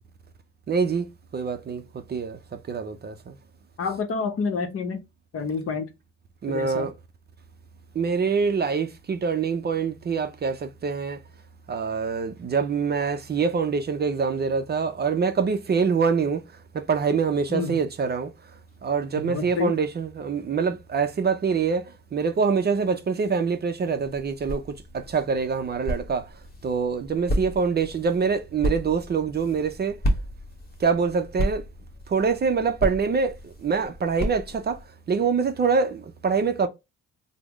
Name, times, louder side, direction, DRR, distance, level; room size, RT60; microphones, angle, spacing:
voice 1, 0.7-1.1 1.3-3.3 6.4-6.9 7.9-11.2 11.7-16.4 16.7-18.3 18.8-24.6 24.9-26.3 26.6-30.0 30.8-31.6 32.1-34.8 35.1-36.7, right 5 dB, 35° right, 0.5 m, -25 dB
voice 2, 3.8-5.0 5.3-5.9 6.5-6.9 17.5-17.8 19.2-19.7, left 5 dB, 50° left, 0.8 m, -28 dB
sound 1, 24.0-34.8, equal, 30° left, 1.1 m, -33 dB
3.4 x 2.0 x 3.4 m
cardioid pair, 90°, 30 cm